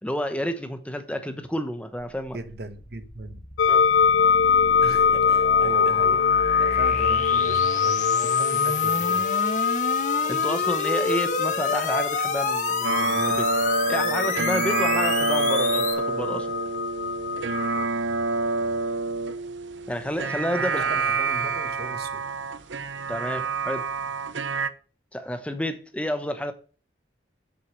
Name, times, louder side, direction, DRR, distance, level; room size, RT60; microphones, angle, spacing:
voice 1, 0.0-2.4 3.7-3.8 10.3-13.5 13.9-16.5 19.9-20.9 23.1-23.9 25.1-26.5, equal, 5° left, 0.8 m, -30 dB
voice 2, 2.3-3.4 4.8-6.3 6.5-9.3 20.6-22.2, right 2 dB, 55° right, 0.9 m, -37 dB
sound 1, 2.5-15.9, left 3 dB, 40° left, 1.5 m, -31 dB
sound 2, 3.6-17.9, left 6 dB, 85° left, 0.4 m, -23 dB
sound 3, 12.8-24.7, right 3 dB, 85° right, 0.7 m, -27 dB
8.1 x 6.4 x 6.3 m
head